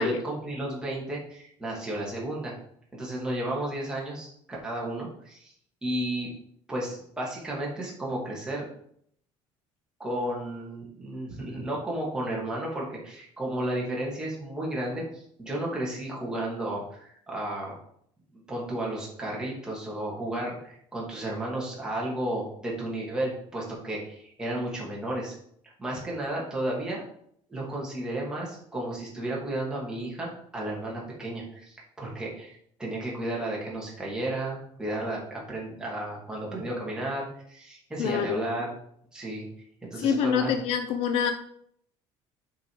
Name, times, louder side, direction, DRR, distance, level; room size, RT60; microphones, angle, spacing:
voice 1, 0.0-2.5 2.9-5.5 5.8-6.3 6.7-8.7 10.0-17.8 18.5-25.4 25.8-27.0 27.5-38.7 39.1-39.5 39.8-40.5, right 1 dB, 5° right, -5 dB, 2.5 m, -33 dB
voice 2, 38.0-38.4 40.0-41.3, left 7 dB, 65° left, 8 dB, 0.6 m, -26 dB
7.5 x 5.4 x 4.9 m, 0.68 s
cardioid pair, 165°, 11 cm